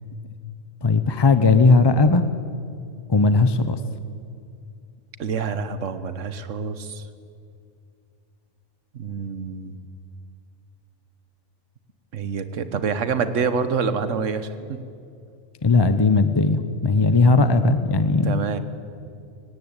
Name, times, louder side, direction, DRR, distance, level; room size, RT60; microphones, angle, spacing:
voice 1, 0.8-2.2 3.1-3.8 15.6-18.4, left 3 dB, 30° left, 11 dB, 0.5 m, -17 dB
voice 2, 5.2-7.1 8.9-9.8 12.1-14.8 18.2-18.6, right 5 dB, 90° right, 12 dB, 1.4 m, -27 dB
18.0 x 17.5 x 8.8 m, 2.4 s
omnidirectional pair, 1.2 m